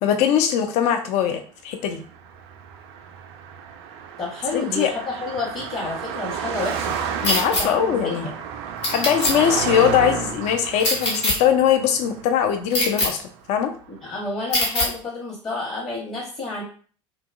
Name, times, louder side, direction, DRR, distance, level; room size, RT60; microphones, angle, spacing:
voice 1, 0.0-2.0 4.5-4.9 7.2-8.3 8.8-13.7, left 9 dB, 45° left, 6 dB, 0.4 m, -21 dB
Car passing by, 2.1-13.6, right 7 dB, 55° right, 0.4 m, -32 dB
voice 2, 4.2-7.0 7.5-8.3 14.0-16.6, left 3 dB, 25° left, -4 dB, 1.0 m, -30 dB
sound 1, 7.2-7.6 8.8-9.3 10.8-11.3 12.7-13.1 14.5-14.9, left 1 dB, 70° left, 1.1 m, -21 dB
2.9 x 2.3 x 2.5 m, 0.42 s
figure-of-eight pair, 70°, 16 cm